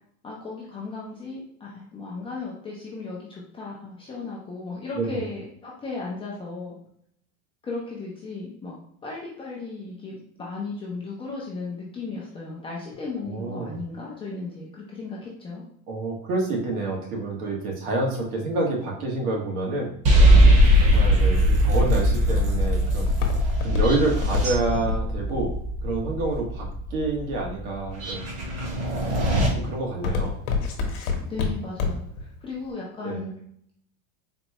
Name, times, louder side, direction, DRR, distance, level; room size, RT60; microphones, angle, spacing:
voice 1, 0.2-6.8 7.6-15.6 31.3-33.3, left 3 dB, 15° left, -4 dB, 0.3 m, -35 dB
voice 2, 13.2-13.8 15.9-20.0 20.8-23.0 23.6-25.6 25.8-28.2 29.5-30.3 33.0-33.2, right 2 dB, 80° right, -1 dB, 1.4 m, -28 dB
sound 1, 20.0-29.5, equal, 35° right, 0.9 m, -21 dB
Walk footsteps, 21.9-27.1 27.7-28.1 28.6-29.0 29.3-32.2 32.5-32.6, left 4 dB, 70° left, 0.9 m, -27 dB
4.1 x 2.2 x 2.8 m, 0.67 s
supercardioid pair, 145°, 43 cm